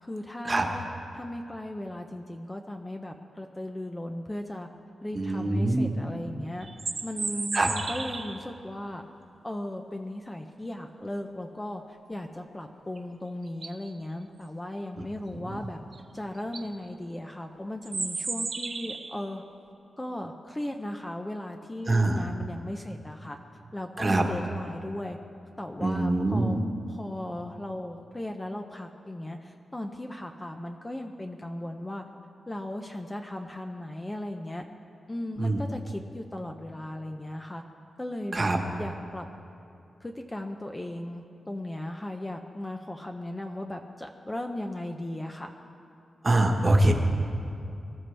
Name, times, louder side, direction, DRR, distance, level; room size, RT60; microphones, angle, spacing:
voice 1, 0.0-0.9 1.1-4.7 5.0-6.7 7.0-9.0 9.4-15.8 16.1-19.4 20.0-23.4 23.7-25.2 25.6-26.6 26.9-32.0 32.5-34.7 35.1-37.6 38.0-38.5 38.8-39.3 40.0-45.5, left 1 dB, 15° left, 4 dB, 0.6 m, -37 dB
voice 2, 5.1-5.9 7.5-7.7 21.9-22.3 24.0-24.2 25.8-26.6 35.4-35.6 38.3-38.6 46.2-46.9, right 2 dB, 25° right, 2 dB, 1.3 m, -24 dB
sound 1, 6.6-8.4 13.0-13.1 13.5-13.9 15.9-16.0 16.4-16.7 17.8-19.2, right 4 dB, 45° right, 1.0 m, -34 dB
23.5 x 13.5 x 3.4 m, 2.7 s
wide cardioid pair, 140°, 0 cm